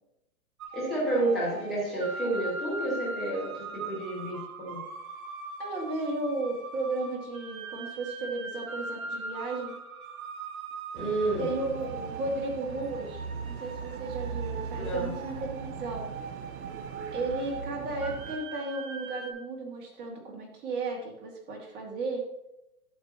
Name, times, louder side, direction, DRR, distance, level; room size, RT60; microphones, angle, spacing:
sound 1, 0.6-19.3, right 4 dB, 70° right, 1.7 m, -41 dB
voice 1, 0.7-4.8 10.9-11.5 14.8-15.1, right 2 dB, ahead, -7 dB, 0.4 m, -30 dB
voice 2, 5.6-9.7 11.4-16.1 17.1-22.3, right 2 dB, 20° right, 0 dB, 2.2 m, -34 dB
sound 2, 10.9-18.4, right 6 dB, 45° right, 0.7 m, -39 dB
12.0 x 8.0 x 3.0 m, 0.86 s
hypercardioid pair, 145°, 45 cm